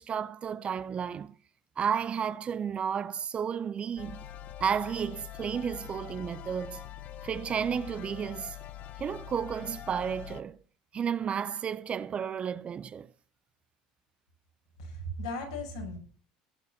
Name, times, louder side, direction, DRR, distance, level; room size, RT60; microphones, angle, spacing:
voice 1, 0.0-1.3 1.8-4.2 4.6-6.8 7.2-8.5 9.0-10.6 10.9-13.1, right 7 dB, 40° right, 0.9 m, -32 dB
sound 1, 4.0-10.4, left 10 dB, 50° left, 1.1 m, -44 dB
voice 2, 14.8-16.0, left 1 dB, 90° left, 6.0 m, -36 dB
18.0 x 6.6 x 7.0 m
hypercardioid pair, 75°, 3 cm